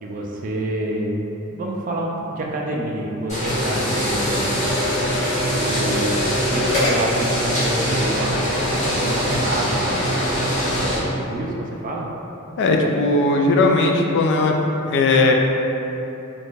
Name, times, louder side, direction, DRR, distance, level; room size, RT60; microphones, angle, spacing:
voice 1, 0.0-1.2 1.5-4.7 5.5-10.1 10.8-12.1, right 1 dB, 35° right, -1 dB, 0.3 m, -28 dB
sound 1, 3.3-11.0, equal, 35° left, 0.9 m, -22 dB
voice 2, 12.6-14.5 14.9-15.3, left 2 dB, 55° left, 2 dB, 0.3 m, -17 dB
2.6 x 2.4 x 3.6 m, 2.9 s
head